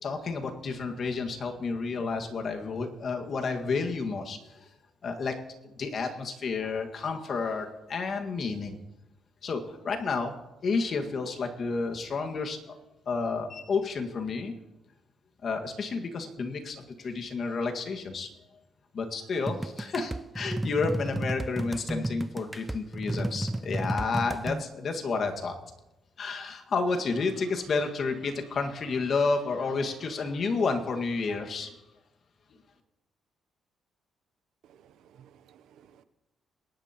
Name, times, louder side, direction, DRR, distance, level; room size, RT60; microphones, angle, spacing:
voice 1, 0.0-4.7 5.0-5.3 5.6-8.8 9.4-10.3 10.6-12.8 13.0-14.5 15.4-18.3 18.9-25.5 26.2-31.7, left 4 dB, 55° left, 4 dB, 1.8 m, -31 dB
sound 1, 19.5-24.6, right 1 dB, 10° right, 0.4 m, -33 dB
voice 2, 34.7-36.0, right 9 dB, 80° right, 14 dB, 0.7 m, -57 dB
22.5 x 11.5 x 3.0 m, 0.97 s
cardioid pair, 90°, 0 cm